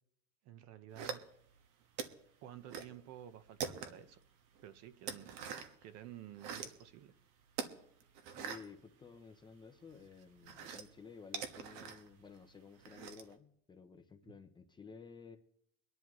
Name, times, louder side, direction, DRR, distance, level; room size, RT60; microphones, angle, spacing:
voice 1, 0.4-1.3 2.4-4.2 4.6-5.4 5.8-7.1 14.2-14.3, right 11 dB, 50° right, 0.9 m, -52 dB
sound 1, 1.0-1.6 2.0-3.0 3.2-4.2 4.6-5.8 6.2-6.8 7.5-9.5 9.9-13.3, right 7 dB, 65° right, 1.5 m, -44 dB
voice 2, 8.3-15.4, left 5 dB, 15° left, 0.6 m, -54 dB
24.0 x 10.5 x 3.1 m
cardioid pair, 165°, 34 cm